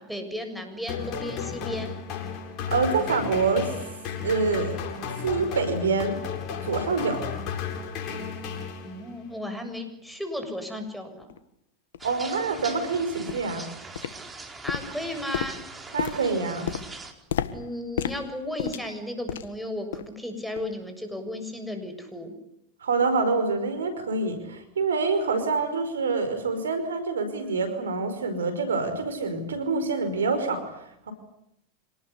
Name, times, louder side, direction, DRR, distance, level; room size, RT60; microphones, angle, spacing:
voice 1, 0.0-1.9 8.8-11.3 14.6-15.6 17.5-22.3, left 1 dB, ahead, 6 dB, 7.1 m, -34 dB
sound 1, 0.9-9.2, left 6 dB, 50° left, 7.6 m, -34 dB
voice 2, 2.7-3.7 4.2-4.8 5.2-6.2 6.6-7.2 12.0-13.7 15.9-16.7 22.8-31.1, right 4 dB, 90° right, 10 dB, 5.2 m, -26 dB
sound 2, 11.3-11.4 11.9-12.1 12.6-12.8 13.3-13.6 14.0-14.4 14.7-19.6 19.9-20.2 20.6-20.7 21.3-21.4, left 9 dB, 80° left, 1.7 m, -33 dB
sound 3, 12.0-17.1, right 3 dB, 15° right, 4.6 m, -42 dB
27.0 x 19.5 x 10.0 m, 0.77 s
hypercardioid pair, 100°, 0 cm